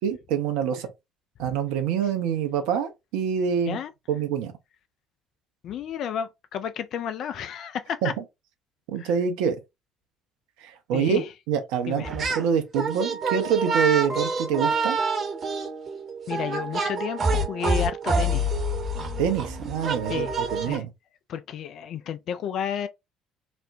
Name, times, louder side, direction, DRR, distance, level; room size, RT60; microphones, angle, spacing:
voice 1, 0.0-0.9 1.4-3.8 4.1-4.5 8.0-8.1 8.9-9.6 10.6-15.0 19.2-20.9, right 7 dB, 70° right, 0.6 m, -26 dB
voice 2, 5.6-8.1 9.0-9.1 10.9-11.3 11.9-12.1 16.3-18.5 20.1-20.3 20.7-20.9 21.3-22.9, left 8 dB, 55° left, 0.4 m, -31 dB
sound 1, 12.0-12.5 12.7-20.8, right 2 dB, 45° right, 1.0 m, -27 dB
4.2 x 2.1 x 2.5 m
hypercardioid pair, 55°, 0 cm